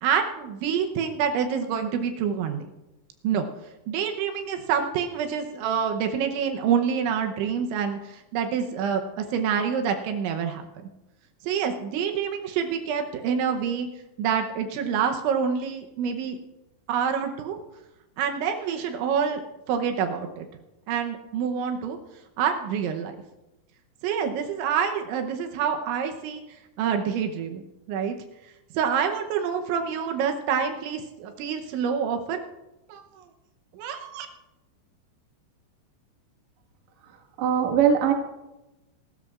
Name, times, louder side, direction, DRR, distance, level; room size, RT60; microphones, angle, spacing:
voice 1, 0.0-2.6 3.2-3.5 3.9-10.6 11.4-13.9 14.2-16.4 16.9-17.6 18.2-20.5 20.9-22.0 22.4-23.2 24.0-26.4 26.8-27.6 27.9-28.2 28.7-32.4 32.9-33.2 33.7-34.3, right 7 dB, 80° right, 5 dB, 3.2 m, -27 dB
voice 2, 37.4-38.1, right 8 dB, 55° right, -1 dB, 2.1 m, -20 dB
27.5 x 13.0 x 2.4 m, 1.0 s
omnidirectional pair, 5.4 m